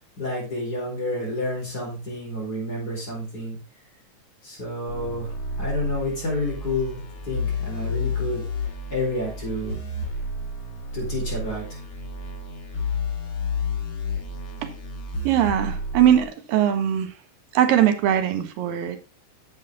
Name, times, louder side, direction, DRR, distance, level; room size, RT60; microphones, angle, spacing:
voice 1, 0.2-3.6 4.4-8.4 8.9-9.8 10.9-11.8, left 1 dB, 25° left, -2 dB, 4.9 m, -29 dB
sound 1, 4.9-16.2, left 3 dB, 60° left, 3.3 m, -31 dB
voice 2, 15.2-17.1 17.5-19.0, right 10 dB, 85° right, 7 dB, 2.9 m, -21 dB
9.5 x 7.8 x 3.7 m, 0.33 s
omnidirectional pair, 3.9 m